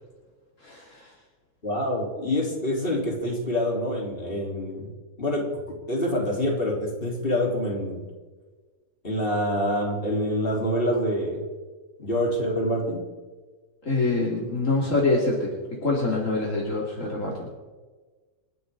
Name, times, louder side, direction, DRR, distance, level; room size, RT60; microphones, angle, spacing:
voice 1, 0.6-1.1 13.8-15.5 15.8-17.5, left 3 dB, 55° left, -3 dB, 3.0 m, -25 dB
voice 2, 1.6-4.9 5.2-5.5 5.9-8.1 9.0-11.4 12.0-13.0, equal, 35° left, -2 dB, 4.2 m, -26 dB
29.5 x 12.0 x 3.9 m, 1.3 s
omnidirectional pair, 1.6 m